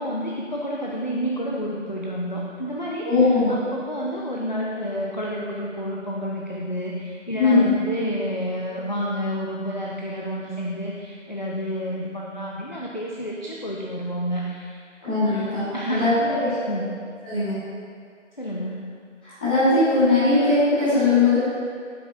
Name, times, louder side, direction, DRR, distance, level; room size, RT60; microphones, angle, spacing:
voice 1, 0.0-3.1 3.5-14.8 15.2-16.9 18.4-18.8, equal, 40° left, -4 dB, 0.5 m, -30 dB
voice 2, 3.0-3.5 7.4-7.6 15.0-15.6 15.9-16.5 17.2-17.5 19.2-21.4, left 3 dB, 10° left, -18 dB, 1.7 m, -19 dB
8.3 x 6.9 x 2.7 m, 2.2 s
figure-of-eight pair, 170°, 38 cm